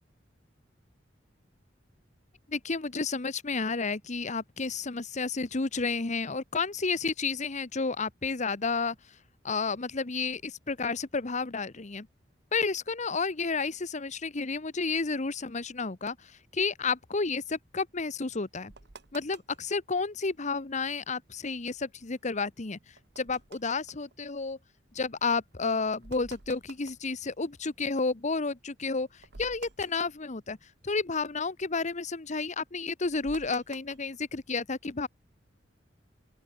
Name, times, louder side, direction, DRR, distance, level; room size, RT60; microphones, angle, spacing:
voice 1, 2.5-9.0 9.4-12.1 12.5-16.2 16.5-18.7 19.1-22.8 23.2-24.6 24.9-29.1 29.4-30.6 30.8-35.1, left 4 dB, 40° left, 1.1 m, -31 dB
sound 1, 16.8-20.0 20.4-20.5 20.6-21.0 21.4-28.1 28.5-28.6 28.9-31.0 31.3-34.3, right 4 dB, 65° right, 1.4 m, -52 dB
open air
head